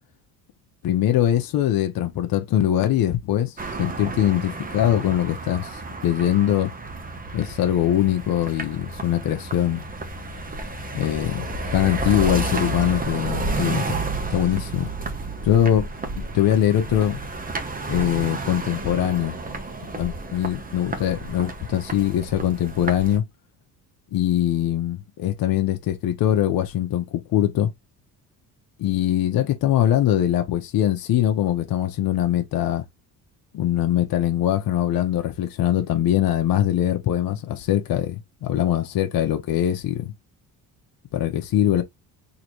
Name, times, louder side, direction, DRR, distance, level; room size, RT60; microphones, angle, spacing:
voice 1, 0.8-6.7 7.3-9.8 10.9-11.4 11.7-14.0 14.3-14.9 15.4-15.9 16.3-17.2 17.9-19.4 19.9-23.2 24.1-27.7 28.8-32.8 33.5-40.1 41.1-41.8, left 11 dB, 70° left, 1.0 m, -22 dB
sound 1, 3.6-23.2, right 2 dB, 25° right, 1.0 m, -31 dB
4.0 x 2.9 x 3.1 m
cardioid pair, 105°, 37 cm